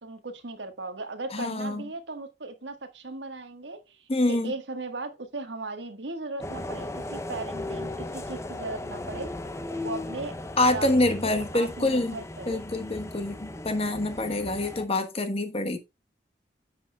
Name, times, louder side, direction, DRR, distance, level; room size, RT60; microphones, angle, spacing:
voice 1, 0.0-9.3 9.8-10.4 10.7-12.6, right 3 dB, 85° right, 1.5 m, -37 dB
voice 2, 1.3-1.9 4.1-4.5 10.6-12.2 12.5-15.8, left 2 dB, 35° left, 1.2 m, -26 dB
sound 1, 6.4-14.9, left 2 dB, 15° left, 0.6 m, -37 dB
10.0 x 7.9 x 2.3 m
head